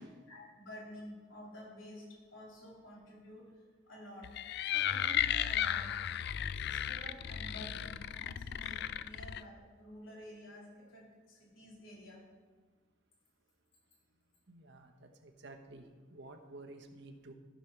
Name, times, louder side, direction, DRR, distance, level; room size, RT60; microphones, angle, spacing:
voice 1, 0.3-3.5 3.9-4.3 4.6-6.0 6.6-12.2, left 1 dB, 90° left, -4 dB, 3.7 m, -51 dB
sound 1, 4.2-9.4, left 10 dB, 55° left, 0.3 m, -35 dB
voice 2, 14.5-15.8 16.1-17.3, right 2 dB, 60° right, 4 dB, 1.1 m, -52 dB
14.5 x 5.3 x 5.8 m, 1.5 s
head